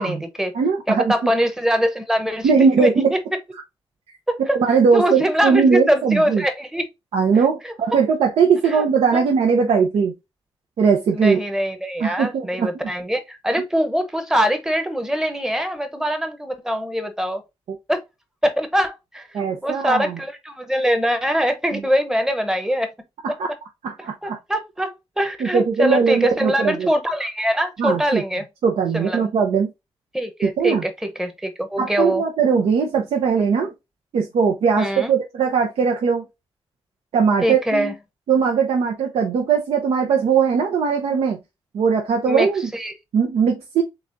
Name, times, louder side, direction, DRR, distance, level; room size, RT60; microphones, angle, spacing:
voice 1, 0.0-0.5 0.9-3.2 4.3-4.6 4.9-6.9 7.6-7.7 8.6-8.8 9.1-9.3 11.1-17.4 17.9-18.0 18.4-22.9 23.3-23.4 24.2-28.4 28.9-29.3 30.1-32.2 34.8-35.1 37.4-37.9 42.3-42.9, equal, 5° right, 0.8 m, -23 dB
voice 2, 0.5-1.3 2.4-3.1 4.5-6.4 7.1-10.1 10.8-11.4 12.0-12.9 19.3-20.2 21.7-21.8 23.2-23.5 23.8-24.4 25.4-26.9 27.8-28.2 28.6-29.7 30.4-30.8 31.8-33.7 34.1-36.2 37.1-37.9 38.3-41.4 41.7-42.6 43.1-43.8, right 6 dB, 85° right, 0.7 m, -19 dB
7.0 x 2.4 x 2.6 m
wide cardioid pair, 120°, 10 cm